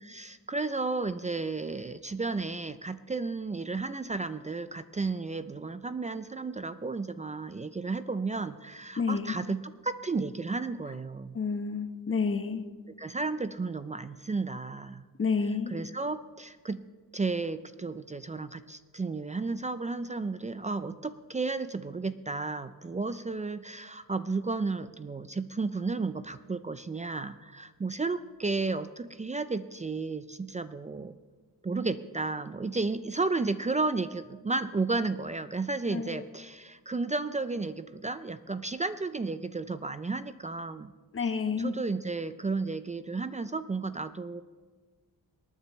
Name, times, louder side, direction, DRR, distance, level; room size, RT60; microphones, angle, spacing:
voice 1, 0.0-11.4 13.0-15.0 15.7-16.8 17.1-31.2 31.6-40.9 41.6-44.4, right 3 dB, 20° right, 12 dB, 0.4 m, -33 dB
voice 2, 9.0-9.3 11.3-12.6 15.2-15.7 35.9-36.2 41.1-41.7, left 5 dB, 35° left, 8 dB, 1.0 m, -29 dB
26.5 x 9.4 x 3.1 m, 1.4 s
wide cardioid pair, 105°, 35 cm